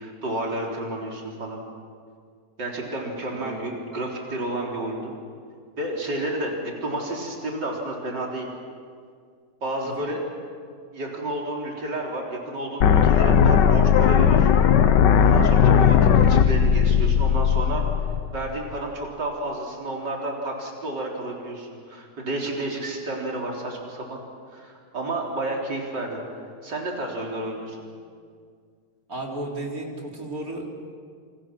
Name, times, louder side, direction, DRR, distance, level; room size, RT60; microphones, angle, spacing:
voice 1, 0.0-1.6 2.6-5.1 5.8-8.5 9.6-10.2 10.9-14.5 15.2-17.8 18.3-24.2 24.5-26.2 26.6-27.8, right 2 dB, 85° right, -1 dB, 4.4 m, -31 dB
voice 2, 3.4-3.7 9.8-10.1 15.7-16.1 29.1-30.7, right 2 dB, 55° right, -1 dB, 4.4 m, -34 dB
sound 1, 12.8-18.8, left 7 dB, 90° left, 1.6 m, -17 dB
28.5 x 28.0 x 6.2 m, 2.1 s
omnidirectional pair, 1.8 m